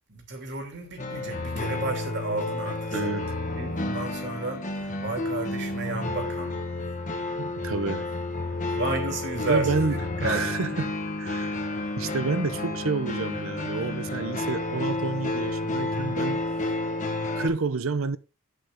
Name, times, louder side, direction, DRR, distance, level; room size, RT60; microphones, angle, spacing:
voice 1, 0.1-3.1 3.6-6.6 8.5-10.8, right 2 dB, 55° right, 2.9 m, -32 dB
sound 1, 1.0-17.5, left 2 dB, 40° left, 1.5 m, -31 dB
voice 2, 2.9-3.4 7.4-8.1 9.4-10.9 11.2-11.6 12.0-16.4 17.4-18.2, right 4 dB, 85° right, 0.8 m, -29 dB
8.4 x 8.3 x 3.7 m
head